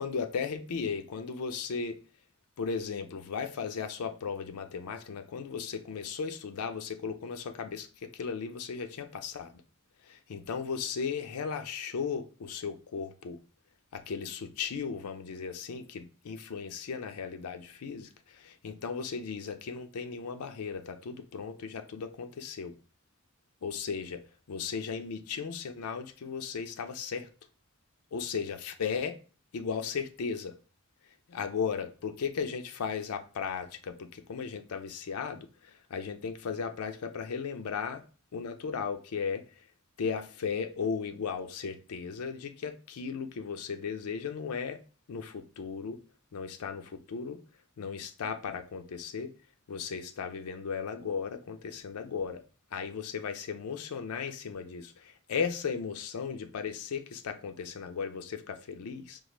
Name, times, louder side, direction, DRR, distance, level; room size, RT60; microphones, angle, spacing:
voice 1, 0.0-2.0 2.6-9.6 10.0-13.4 13.9-22.7 23.6-24.2 24.5-27.3 28.1-29.2 29.5-30.6 31.3-38.0 38.3-39.6 40.0-44.8 45.1-46.0 46.3-47.4 47.8-49.3 49.7-52.4 52.7-59.2, left 6 dB, 85° left, 0.5 m, -36 dB
4.5 x 2.4 x 3.0 m
head